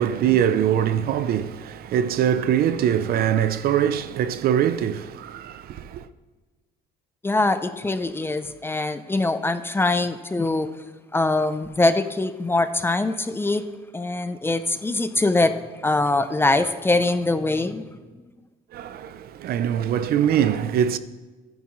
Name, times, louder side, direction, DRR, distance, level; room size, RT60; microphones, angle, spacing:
voice 1, 0.0-6.1 18.7-21.0, right 9 dB, 65° right, 0.6 m, -23 dB
voice 2, 7.2-10.7 11.1-13.6 13.9-15.5 15.8-17.9, left 2 dB, 15° left, 0.5 m, -23 dB
14.0 x 10.0 x 3.1 m
cardioid pair, 110°, 17 cm